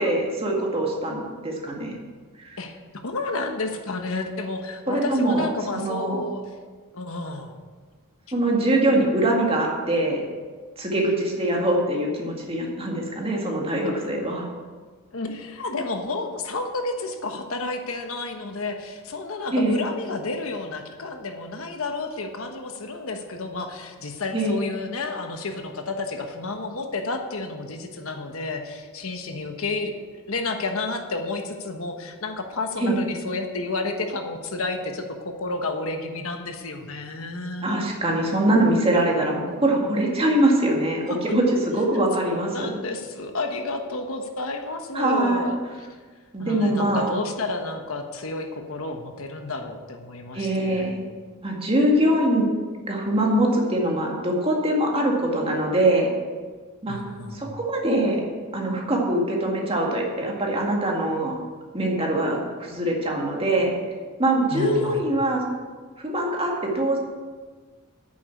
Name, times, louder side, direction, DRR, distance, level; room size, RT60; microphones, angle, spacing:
voice 1, 0.0-2.0 2.4-2.6 4.9-5.5 5.7-6.2 8.3-10.2 10.8-14.5 19.5-19.8 24.3-24.6 32.8-33.0 37.6-42.7 44.9-45.5 46.3-47.1 50.3-51.0 51.4-52.5 52.9-56.1 56.8-57.0 57.3-58.2 58.5-61.4 61.7-63.7 64.2-65.5 66.0-67.0, right 1 dB, 25° right, -1 dB, 2.0 m, -23 dB
voice 2, 3.0-6.4 6.9-7.6 15.1-29.9 30.3-37.7 41.1-41.2 42.2-45.5 46.4-50.9 56.9-57.5 64.5-65.0, left 3 dB, 65° left, 5 dB, 1.2 m, -31 dB
9.3 x 7.0 x 8.4 m, 1.5 s
head